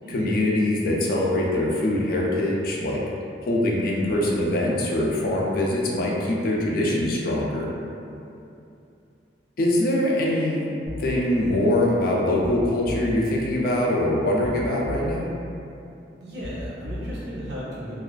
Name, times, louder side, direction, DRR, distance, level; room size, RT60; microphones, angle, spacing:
voice 1, 0.1-3.0 3.4-7.7 9.6-15.3, left 1 dB, 55° left, -3 dB, 0.3 m, -23 dB
sound 1, 10.9-11.2 12.4-13.2 14.4-15.2 16.4-17.2, left 1 dB, 90° right, 1.1 m, -35 dB
voice 2, 16.2-18.0, equal, 65° right, -8 dB, 0.6 m, -35 dB
2.3 x 2.3 x 2.3 m, 2.7 s
head